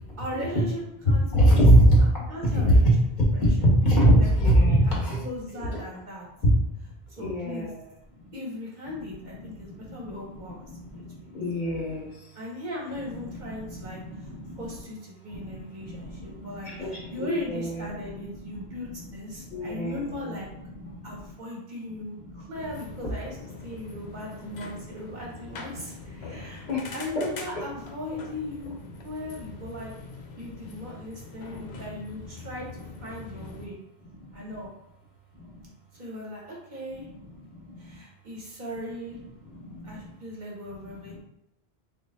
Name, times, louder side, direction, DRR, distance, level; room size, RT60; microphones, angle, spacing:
voice 1, 0.2-1.6 2.3-2.9 3.3-3.5 4.1-4.3 4.6-6.3 7.1-7.7 8.3-10.6 10.9-11.3 12.3-14.3 14.6-20.5 21.0-23.4 23.6-28.7 29.0-29.9 30.4-33.8 34.3-34.7 35.9-37.1 37.8-39.2 39.8-41.2, left 1 dB, 50° right, -3 dB, 0.9 m, -38 dB
voice 2, 1.0-2.0 2.6-2.8 3.4-5.2 6.4-6.5 7.2-7.7 11.3-12.1 13.1-13.5 13.8-14.7 15.3-15.4 15.8-17.9 19.5-20.3 20.9-21.0 26.7-26.9 27.1-27.2, equal, 50° left, -4 dB, 1.1 m, -22 dB
sound 1, 22.5-33.7, left 4 dB, 90° left, 0.9 m, -43 dB
3.0 x 2.3 x 4.0 m, 0.84 s
omnidirectional pair, 1.0 m